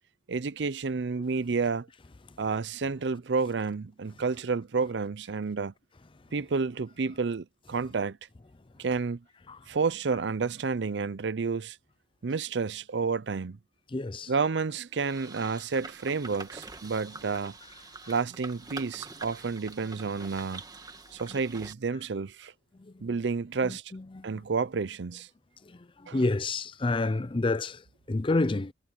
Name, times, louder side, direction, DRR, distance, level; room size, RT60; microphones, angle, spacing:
voice 1, 0.3-1.9 2.4-5.7 6.3-8.2 8.8-9.2 9.7-11.8 12.2-13.6 14.3-17.5 18.1-20.6 21.1-22.5 23.0-23.8 24.2-25.3 26.1-26.2, right 4 dB, 75° right, 0.6 m, -30 dB
voice 2, 13.9-14.3 18.0-18.1 21.3-21.4 22.7-23.2 23.6-24.4 25.6-28.7, left 2 dB, 30° left, 0.6 m, -30 dB
sound 1, 14.9-21.7, right 3 dB, 20° right, 1.8 m, -45 dB
head